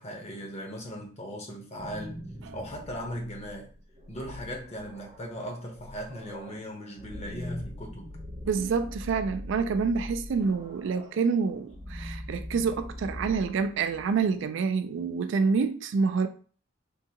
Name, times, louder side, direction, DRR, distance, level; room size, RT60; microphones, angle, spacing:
voice 1, 0.0-2.1 2.5-3.7 4.1-8.2, equal, 35° left, 0.8 m, -38 dB
sound 1, 1.6-14.4, left 1 dB, 30° right, 0.7 m, -42 dB
voice 2, 8.4-16.3, right 5 dB, 65° right, 0.3 m, -27 dB
3.6 x 2.3 x 2.8 m
head